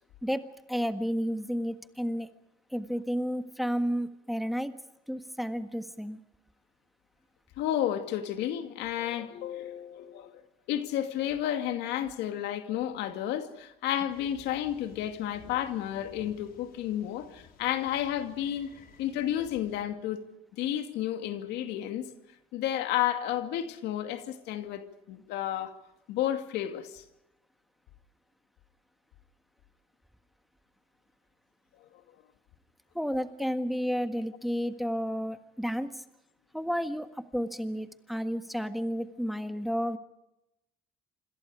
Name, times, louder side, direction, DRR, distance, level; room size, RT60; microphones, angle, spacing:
voice 1, 0.7-2.3 2.7-4.7 5.1-6.2 32.9-36.0 36.5-40.0, equal, ahead, 1.5 m, -31 dB
voice 2, 7.6-10.4 10.7-18.7 19.0-20.2 20.5-22.1 22.5-25.8 26.1-27.0 31.8-31.9, left 11 dB, 90° left, 2.3 m, -32 dB
sound 1, 14.1-19.8, left 6 dB, 65° left, 4.7 m, -55 dB
27.5 x 26.5 x 4.9 m
cardioid pair, 110°, 17 cm